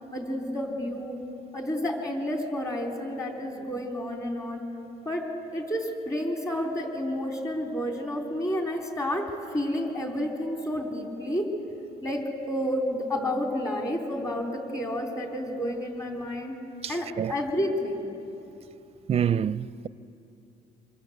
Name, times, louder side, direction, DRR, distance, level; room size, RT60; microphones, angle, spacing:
voice 1, 0.1-1.2 1.5-4.6 5.1-11.5 12.0-16.6 16.9-18.1, equal, 20° left, 3.8 m, -30 dB
voice 2, 19.1-19.9, right 8 dB, 35° right, 0.6 m, -26 dB
27.0 x 25.5 x 8.1 m
cardioid pair, 110°, 17 cm